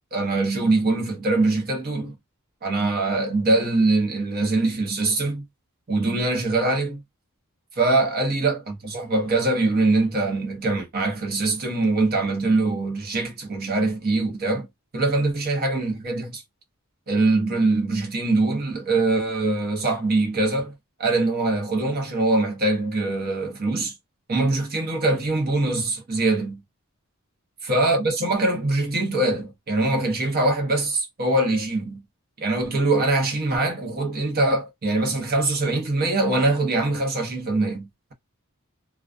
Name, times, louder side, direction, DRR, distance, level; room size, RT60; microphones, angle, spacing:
voice 1, 0.1-2.1 2.6-5.4 5.9-7.0 7.8-14.7 14.9-16.4 17.1-20.7 21.0-23.9 24.3-26.6 27.7-32.0 32.4-38.1, right 2 dB, 45° right, 0.8 m, -23 dB
2.3 x 2.2 x 2.4 m
head